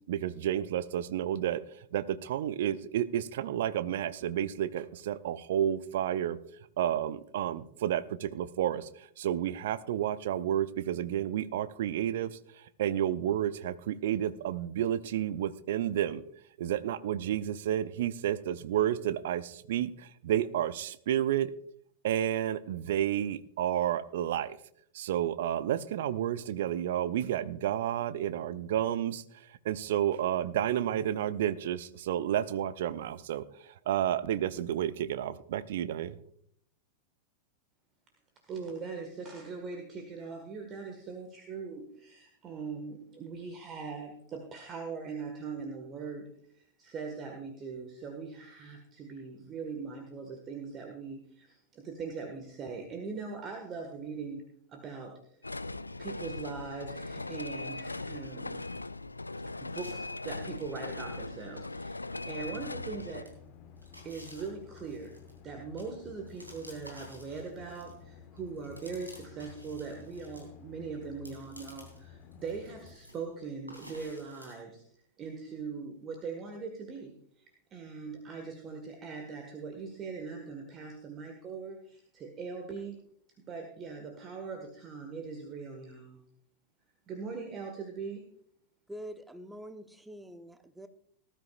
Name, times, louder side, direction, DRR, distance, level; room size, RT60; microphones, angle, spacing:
voice 1, 0.1-6.4 6.8-16.2 16.6-21.5 22.0-24.6 24.9-36.2, right 11 dB, 55° right, 16 dB, 0.6 m, -31 dB
voice 2, 38.5-46.3 46.5-55.2 56.0-58.6 59.6-63.3 64.0-65.1 65.4-74.8 75.2-83.0 83.5-86.2 87.1-88.2, right 5 dB, 30° right, 3 dB, 1.7 m, -41 dB
sound 1, 55.4-63.2, left 2 dB, 80° left, 0.4 m, -39 dB
sound 2, 59.7-61.0 61.4-61.5 62.0-62.9 63.3-68.1 68.4-70.5 70.9-72.0 72.3-73.3 73.7-74.6, equal, 90° right, 3.3 m, -53 dB
sound 3, 62.4-73.0, left 7 dB, 40° left, 1.3 m, -53 dB
voice 3, 88.9-90.9, equal, 5° right, 10 dB, 1.0 m, -45 dB
18.5 x 12.5 x 2.5 m, 0.66 s
figure-of-eight pair, 90°, 0 cm